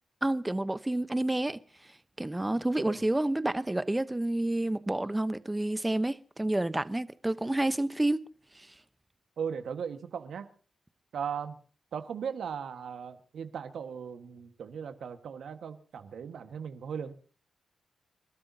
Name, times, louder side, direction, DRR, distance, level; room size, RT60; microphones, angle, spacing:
voice 1, 0.2-1.6 2.2-8.2, right 1 dB, 15° right, 0.9 m, -29 dB
voice 2, 9.4-10.5 11.1-11.6 11.9-17.1, right 7 dB, 80° right, 1.5 m, -37 dB
28.0 x 12.5 x 2.8 m
cardioid pair, 60°, 0 cm